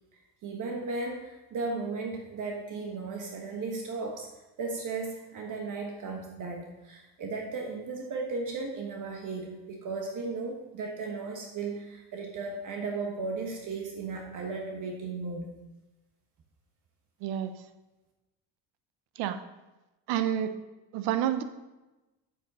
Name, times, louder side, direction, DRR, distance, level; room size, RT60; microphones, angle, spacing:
voice 1, 0.4-4.3 4.6-15.5, right 3 dB, 50° right, 1 dB, 1.4 m, -35 dB
voice 2, 20.1-20.5 20.9-21.4, right 10 dB, 85° right, 10 dB, 0.8 m, -28 dB
8.2 x 7.5 x 4.3 m, 1.1 s
cardioid pair, 115°, 39 cm